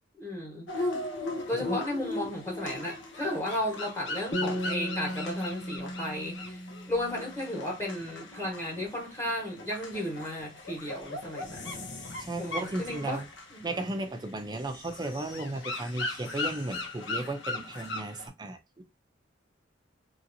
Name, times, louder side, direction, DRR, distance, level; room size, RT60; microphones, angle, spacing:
voice 1, 0.2-0.7 1.5-6.6 6.9-11.9 12.4-13.2 13.5-13.6, left 1 dB, 15° left, 1.3 m, -34 dB
sound 1, 0.7-18.3, left 2 dB, 65° left, 0.8 m, -38 dB
sound 2, 4.3-7.8, equal, 30° left, 0.9 m, -36 dB
voice 2, 12.2-13.3 13.6-18.8, right 2 dB, 20° right, 0.5 m, -35 dB
3.1 x 2.8 x 2.6 m
head